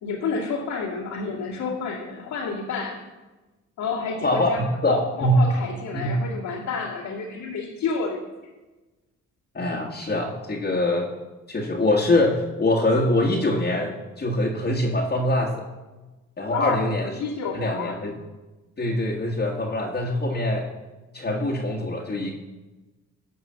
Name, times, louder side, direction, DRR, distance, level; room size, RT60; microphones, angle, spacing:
voice 1, 0.0-3.0 3.8-8.2 16.5-18.0, left 5 dB, 80° left, -6 dB, 2.4 m, -30 dB
voice 2, 4.2-5.4 5.9-6.2 9.5-11.1 11.5-15.6 16.4-17.1 17.5-18.1 18.8-20.7 21.1-22.3, left 1 dB, 35° left, -2 dB, 1.7 m, -23 dB
15.0 x 5.5 x 7.5 m, 1.2 s
cardioid pair, 90°, 30 cm